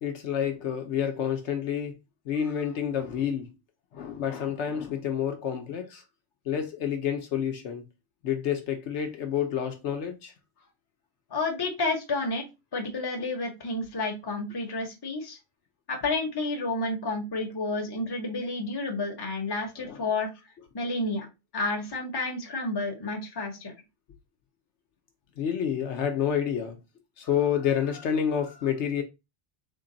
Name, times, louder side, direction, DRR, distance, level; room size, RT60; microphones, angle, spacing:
voice 1, 0.0-1.9 2.3-3.5 3.9-6.0 6.5-7.8 8.2-10.3 19.8-20.0 25.4-26.8 27.2-29.0, left 8 dB, 65° left, 0.9 m, -29 dB
voice 2, 11.3-12.5 12.7-15.4 15.9-20.3 20.7-21.3 21.5-23.7, left 2 dB, 20° left, 0.8 m, -30 dB
3.8 x 2.2 x 3.8 m
omnidirectional pair, 1.3 m